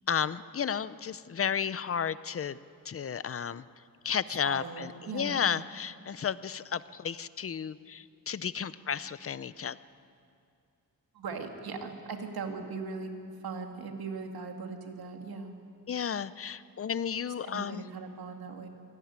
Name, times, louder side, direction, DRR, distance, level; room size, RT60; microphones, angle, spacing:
voice 1, 0.1-2.6 2.8-3.6 4.0-9.8 15.9-17.9, left 7 dB, 40° left, 16 dB, 0.6 m, -33 dB
voice 2, 4.4-5.5 11.1-13.1 13.4-15.5 17.4-18.7, right 4 dB, 80° right, 3 dB, 2.5 m, -39 dB
25.5 x 18.0 x 9.5 m, 2.5 s
wide cardioid pair, 150°, 36 cm